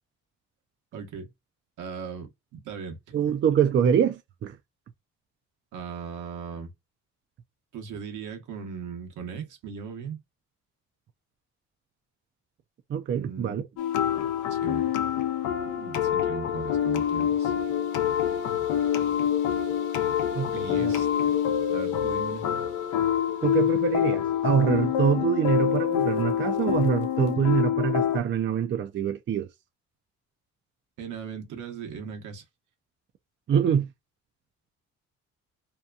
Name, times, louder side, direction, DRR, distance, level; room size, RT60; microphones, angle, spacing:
voice 1, 0.9-1.3 1.8-3.0 3.3-3.4 5.7-6.7 7.7-10.2 13.1-13.6 14.5-15.0 15.6-17.5 20.5-21.4 21.7-22.5 31.0-32.4, right 6 dB, 75° right, 1.0 m, -38 dB
voice 2, 3.1-4.6 12.9-13.6 20.3-21.0 23.4-29.5 33.5-33.9, right 8 dB, 40° right, 0.4 m, -25 dB
sound 1, 13.8-28.2, left 9 dB, 85° left, 0.6 m, -26 dB
2.8 x 2.2 x 2.3 m
cardioid pair, 90°, 30 cm